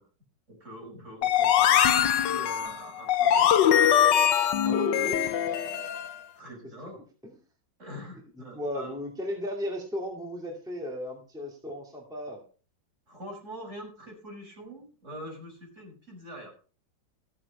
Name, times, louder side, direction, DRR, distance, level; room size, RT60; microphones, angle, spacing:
voice 1, 0.5-3.7 6.3-7.0 7.8-8.9 13.1-16.5, equal, 40° right, -1 dB, 6.3 m, -44 dB
sound 1, 1.2-6.1, left 9 dB, 80° left, 1.5 m, -22 dB
voice 2, 4.6-5.4 7.2-7.3 8.4-12.4, equal, ahead, 0 dB, 2.3 m, -35 dB
14.5 x 7.7 x 5.4 m, 0.38 s
omnidirectional pair, 1.9 m